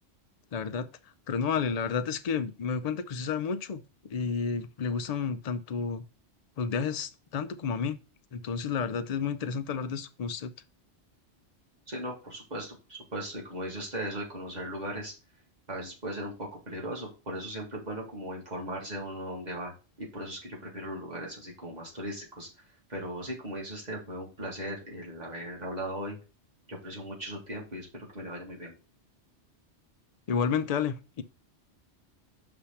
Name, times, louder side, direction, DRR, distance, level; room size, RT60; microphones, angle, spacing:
voice 1, 0.5-0.9 1.3-6.0 6.6-8.0 8.3-10.5 30.3-31.2, left 6 dB, 50° left, 0.4 m, -31 dB
voice 2, 11.9-15.1 15.7-22.5 22.9-26.2 26.7-28.8, right 1 dB, 40° right, 2.0 m, -38 dB
5.6 x 3.5 x 5.7 m
omnidirectional pair, 1.2 m